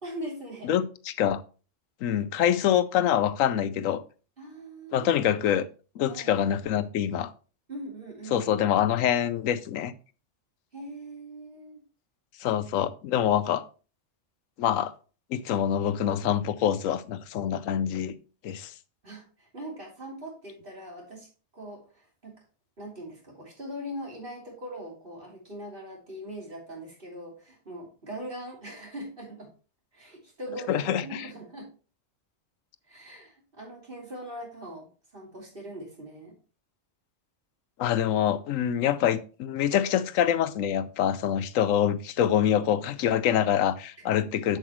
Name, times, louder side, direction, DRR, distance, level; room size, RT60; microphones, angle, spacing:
voice 1, 0.0-0.8 4.4-5.1 6.0-6.4 7.7-8.5 10.7-11.8 19.0-21.3 21.5-22.4 22.8-29.5 29.9-31.7 32.9-36.3 44.2-44.3, right 1 dB, 45° right, 3.3 m, -41 dB
voice 2, 0.6-1.4 2.0-4.0 4.9-5.7 6.0-7.3 8.3-9.9 12.4-13.6 14.6-14.9 15.3-18.1 18.4-18.7 30.7-31.3 37.8-44.6, left 10 dB, 90° left, 1.0 m, -25 dB
7.9 x 7.5 x 3.1 m
omnidirectional pair, 1.3 m